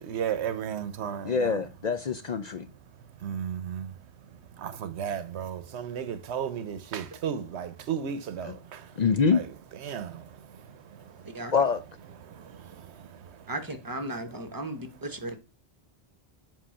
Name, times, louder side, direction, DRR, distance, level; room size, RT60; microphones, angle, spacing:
voice 1, 0.0-1.6 3.2-3.9 4.6-8.5 9.3-9.5 9.8-10.2, right 8 dB, 90° right, 1.0 m, -33 dB
voice 2, 1.2-2.7 9.0-9.4 11.5-11.8, left 5 dB, 50° left, 0.5 m, -25 dB
voice 3, 13.5-15.4, right 1 dB, 20° right, 0.8 m, -35 dB
7.6 x 2.6 x 5.6 m
omnidirectional pair, 1.1 m